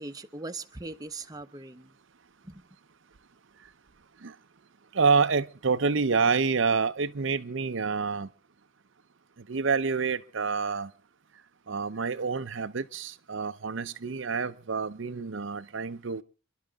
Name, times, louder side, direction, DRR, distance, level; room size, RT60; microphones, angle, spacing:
voice 1, 0.0-1.9 2.4-2.6, right 3 dB, 20° right, 0.8 m, -40 dB
voice 2, 4.9-8.3 9.5-10.9 11.7-16.2, right 5 dB, 60° right, 0.7 m, -27 dB
29.5 x 12.0 x 3.6 m
head